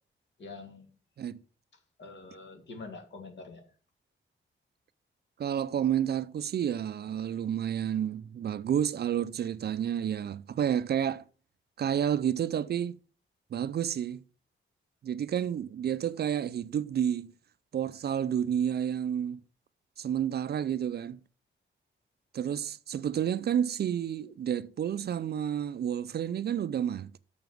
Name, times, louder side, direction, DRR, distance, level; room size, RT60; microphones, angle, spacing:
voice 1, 0.4-1.0 1.7-3.7, left 3 dB, 60° left, 2.6 m, -46 dB
voice 2, 5.4-11.2 11.8-13.0 13.5-14.2 15.0-17.3 17.7-19.4 20.0-21.2 22.3-27.2, right 9 dB, 50° right, 0.4 m, -30 dB
7.0 x 6.9 x 7.7 m
wide cardioid pair, 175°, 21 cm